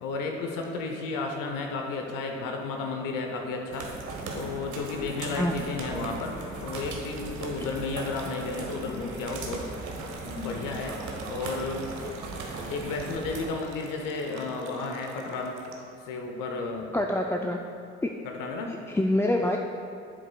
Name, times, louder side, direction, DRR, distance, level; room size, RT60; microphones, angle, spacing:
voice 1, 0.0-3.9 4.3-9.6 10.2-11.0 11.3-11.8 12.7-15.6 16.0-16.9 18.2-18.7, left 3 dB, 75° left, 2 dB, 0.8 m, -33 dB
sound 1, 3.7-13.5, right 3 dB, 65° right, 1.1 m, -38 dB
sound 2, 6.7-16.0, right 3 dB, 90° right, 0.7 m, -48 dB
voice 2, 16.9-17.6 18.0-18.1 18.9-19.6, left 1 dB, 10° left, 2 dB, 0.4 m, -25 dB
7.7 x 7.6 x 2.3 m, 2.6 s
hypercardioid pair, 45°, 33 cm